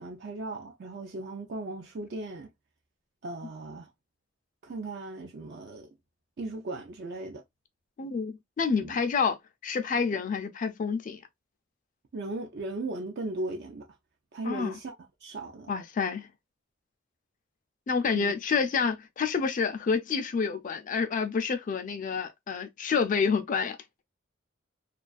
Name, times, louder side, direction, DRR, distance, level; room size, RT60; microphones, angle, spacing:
voice 1, 0.0-2.5 3.2-3.9 4.6-5.9 6.4-7.4 8.8-9.0 12.1-13.9 14.3-14.9 15.2-15.7 18.2-18.3, right 2 dB, 55° right, 0.4 m, -37 dB
voice 2, 8.0-9.4 9.6-11.2 14.4-14.8 15.7-16.3 17.9-23.8, left 5 dB, 40° left, 0.4 m, -28 dB
2.4 x 2.3 x 2.3 m
head